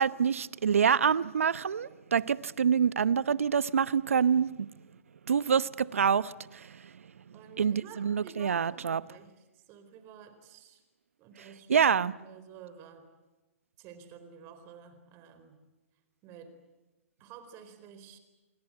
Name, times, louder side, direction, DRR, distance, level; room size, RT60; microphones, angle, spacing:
voice 1, 0.0-4.7 5.3-6.8 7.6-9.0 11.7-12.1, right 7 dB, 75° right, 0.9 m, -26 dB
voice 2, 7.3-10.8 11.2-13.1 13.8-15.6 16.2-16.5 17.2-18.2, right 7 dB, 35° right, 4.2 m, -51 dB
27.5 x 22.0 x 9.0 m
hypercardioid pair, 120°, 7 cm